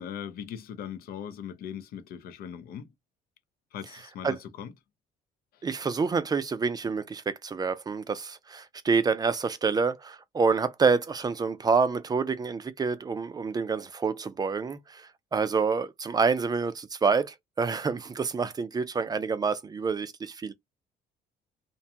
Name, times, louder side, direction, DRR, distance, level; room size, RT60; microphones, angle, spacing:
voice 1, 0.0-2.9 3.7-4.7 5.5-5.6, left 8 dB, 65° left, 0.5 m, -39 dB
voice 2, 5.6-20.5, right 5 dB, 25° right, 0.4 m, -27 dB
2.5 x 2.2 x 2.8 m
cardioid pair, 110°, 17 cm